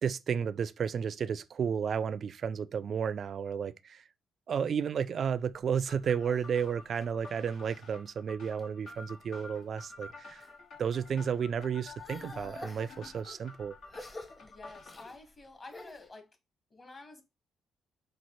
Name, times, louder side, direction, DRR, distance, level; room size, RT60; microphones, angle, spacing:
voice 1, 0.0-4.0 4.5-10.5 10.8-13.8, right 7 dB, 55° right, 0.3 m, -32 dB
sound 1, 5.4-7.9 8.4-9.0 9.5-10.6 10.9-16.1, left 1 dB, 20° left, 0.8 m, -50 dB
sound 2, 5.9-15.1, left 4 dB, 80° left, 1.5 m, -50 dB
voice 2, 14.4-16.3 16.7-17.2, left 2 dB, 35° left, 1.4 m, -50 dB
5.5 x 2.5 x 3.1 m
cardioid pair, 90°, 0 cm